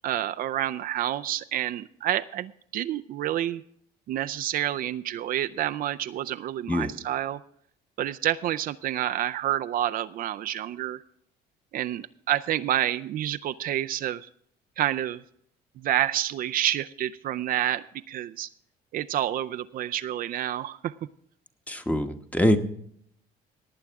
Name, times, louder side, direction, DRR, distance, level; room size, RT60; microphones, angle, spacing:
voice 1, 0.0-3.6 4.1-7.4 8.0-11.0 11.7-14.3 14.8-15.2 15.8-18.5 18.9-20.9, right 12 dB, 60° right, 10 dB, 0.5 m, -28 dB
voice 2, 21.7-22.6, left 1 dB, 10° left, 7 dB, 1.1 m, -24 dB
18.5 x 8.8 x 3.5 m, 0.68 s
cardioid pair, 110°, 17 cm